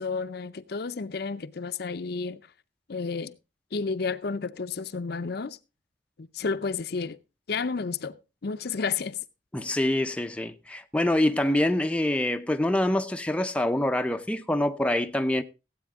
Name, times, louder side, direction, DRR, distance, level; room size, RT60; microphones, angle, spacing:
voice 1, 0.0-2.4 2.9-3.4 3.7-5.6 6.2-7.2 7.5-8.2 8.4-9.2, left 4 dB, 55° left, 0.5 m, -31 dB
voice 2, 9.5-15.4, left 1 dB, 5° left, 0.5 m, -25 dB
16.5 x 8.5 x 3.6 m
head